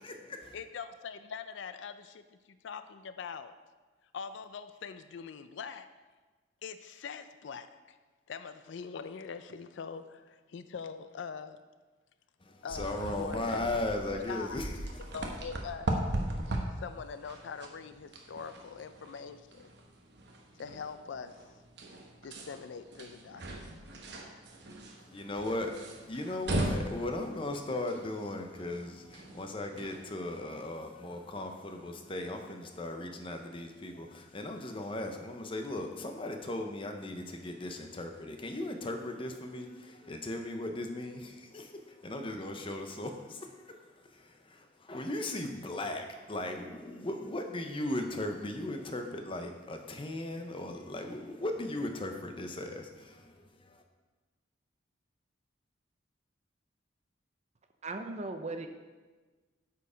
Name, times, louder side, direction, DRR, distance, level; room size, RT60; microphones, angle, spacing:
voice 1, 0.0-0.6 12.4-15.1 25.0-53.8, left 1 dB, 25° left, 5 dB, 0.7 m, -37 dB
voice 2, 0.5-3.5 4.1-5.9 6.6-8.0 8.3-11.6 12.6-13.6 14.3-14.6 15.1-15.9 16.8-19.7 20.6-21.4 22.2-23.7, left 6 dB, 70° left, 11 dB, 0.4 m, -43 dB
sound 1, 12.7-30.0, right 1 dB, 60° right, 1.0 m, -39 dB
voice 3, 57.8-58.7, right 2 dB, 35° right, 6 dB, 0.6 m, -37 dB
8.2 x 4.8 x 5.0 m, 1.3 s
head